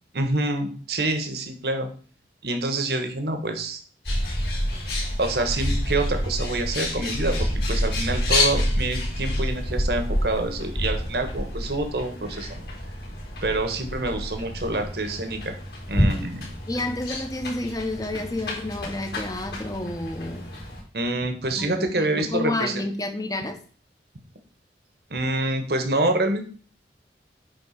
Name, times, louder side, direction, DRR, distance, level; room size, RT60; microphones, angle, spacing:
voice 1, 0.1-1.9 2.4-3.8 5.2-12.6 13.4-15.5 15.9-16.5 20.9-22.8 25.1-26.5, right 2 dB, 65° right, 6 dB, 1.3 m, -27 dB
Bird, 4.0-20.8, left 1 dB, 65° left, 4.2 m, -28 dB
voice 2, 16.7-20.5 21.6-23.6, left 2 dB, 20° left, 6 dB, 0.9 m, -30 dB
8.9 x 3.9 x 5.8 m, 0.42 s
head